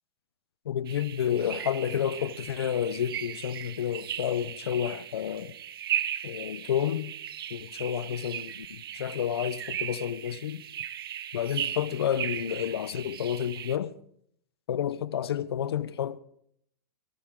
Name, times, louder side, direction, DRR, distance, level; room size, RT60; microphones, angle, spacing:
voice 1, 0.7-5.6 6.2-7.1 7.5-10.6 11.3-13.9 14.7-16.2, left 9 dB, 90° left, 0.8 m, -30 dB
sound 1, 0.9-13.8, right 10 dB, 70° right, 0.9 m, -37 dB
18.0 x 17.5 x 3.7 m
supercardioid pair, 165°, 13 cm